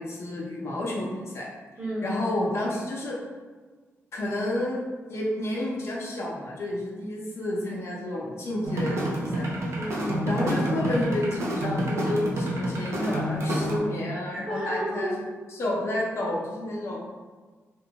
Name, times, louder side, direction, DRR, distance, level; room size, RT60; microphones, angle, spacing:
voice 1, 0.0-1.5 2.0-3.2 4.1-4.8 5.1-9.5 10.2-15.1 15.5-17.0, left 1 dB, 60° left, -4 dB, 0.6 m, -30 dB
voice 2, 1.8-2.2 9.7-10.2 14.5-15.1, equal, 25° right, -8 dB, 1.1 m, -31 dB
sound 1, 8.6-13.8, right 1 dB, 60° right, 0.5 m, -28 dB
2.5 x 2.2 x 2.8 m, 1.4 s
wide cardioid pair, 115°, 5 cm